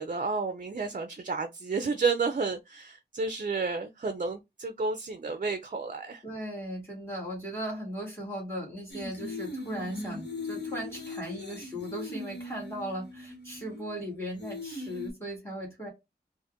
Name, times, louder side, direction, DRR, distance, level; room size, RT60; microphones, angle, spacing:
voice 1, 0.0-6.2, right 4 dB, 50° right, 0.5 m, -31 dB
voice 2, 6.2-15.9, equal, 15° left, 2.1 m, -37 dB
sound 1, 8.9-14.0 14.4-15.1, left 2 dB, 75° left, 1.4 m, -39 dB
4.2 x 2.5 x 2.5 m
wide cardioid pair, 55°, 18 cm